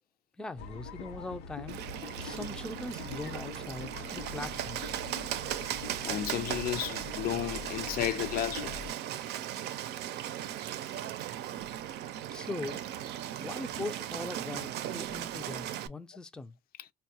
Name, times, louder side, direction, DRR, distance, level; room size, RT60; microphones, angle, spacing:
voice 1, 0.4-5.0 12.3-12.8 13.4-16.6, left 2 dB, 5° left, 0.4 m, -41 dB
sound 1, 0.6-8.9, left 4 dB, 85° left, 0.8 m, -44 dB
Bird, 1.7-15.9, right 11 dB, 80° right, 0.5 m, -37 dB
voice 2, 6.0-8.8, left 11 dB, 60° left, 0.5 m, -33 dB
4.5 x 2.2 x 2.8 m
cardioid pair, 110°, 17 cm